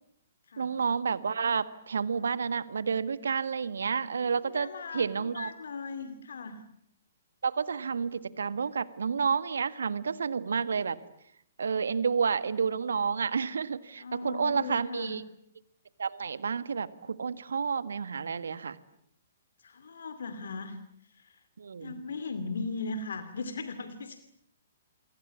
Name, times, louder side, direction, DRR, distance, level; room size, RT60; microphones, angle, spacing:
voice 1, 0.6-5.5 7.4-11.0 11.6-15.2 16.0-18.8 21.6-22.0, right 6 dB, 65° right, 15 dB, 1.6 m, -30 dB
voice 2, 4.5-6.6 14.0-15.2 19.6-20.8 21.1-21.4 21.8-24.2, left 4 dB, 65° left, 10 dB, 2.5 m, -38 dB
28.5 x 23.0 x 8.4 m, 0.70 s
figure-of-eight pair, 120°, 0 cm